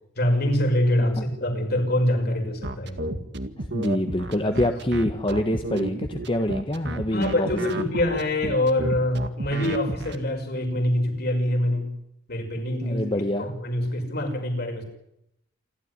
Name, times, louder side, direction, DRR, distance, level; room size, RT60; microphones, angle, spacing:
voice 1, 0.2-3.2 4.4-4.5 7.1-11.9 12.3-13.0 13.4-14.8, left 1 dB, 55° left, 4 dB, 6.0 m, -25 dB
sound 1, 2.6-10.2, right 2 dB, 65° right, 2.0 m, -32 dB
voice 2, 3.6-7.5 7.8-7.9 12.8-13.5, left 1 dB, 30° left, 6 dB, 1.5 m, -26 dB
28.5 x 13.0 x 10.0 m, 0.80 s
head